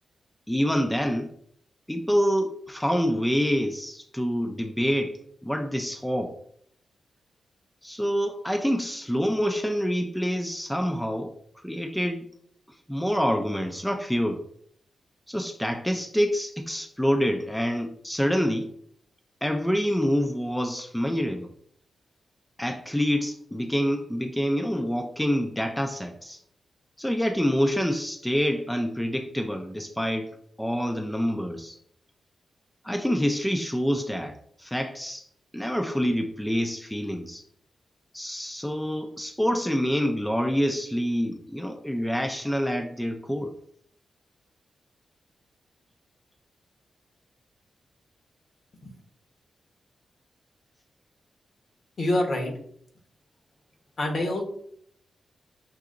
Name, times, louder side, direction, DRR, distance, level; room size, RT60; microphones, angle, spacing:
voice 1, 0.5-1.3 1.9-6.3 7.8-12.3 12.9-14.4 15.3-18.7 19.4-21.5 22.6-26.4 27.0-31.8 32.8-35.3 35.5-37.4 38.1-43.5, equal, 5° left, 4 dB, 0.4 m, -27 dB
voice 2, 52.0-52.5 54.0-54.4, left 1 dB, 55° left, 2 dB, 1.0 m, -26 dB
5.8 x 2.7 x 2.5 m, 0.65 s
wide cardioid pair, 105°, 0 cm